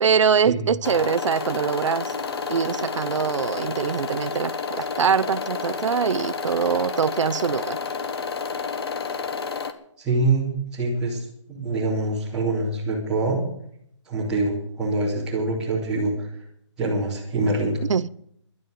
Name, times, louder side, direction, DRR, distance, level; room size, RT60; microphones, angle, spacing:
voice 1, 0.0-2.1 2.5-7.8 17.9-18.1, right 6 dB, 75° right, 19 dB, 0.8 m, -23 dB
sound 1, 0.8-9.7, left 5 dB, 55° left, 1.5 m, -30 dB
voice 2, 10.0-13.4 14.0-16.3 16.8-17.8, right 2 dB, 5° right, -9 dB, 3.0 m, -25 dB
12.0 x 10.5 x 9.5 m, 0.70 s
hypercardioid pair, 175°, 16 cm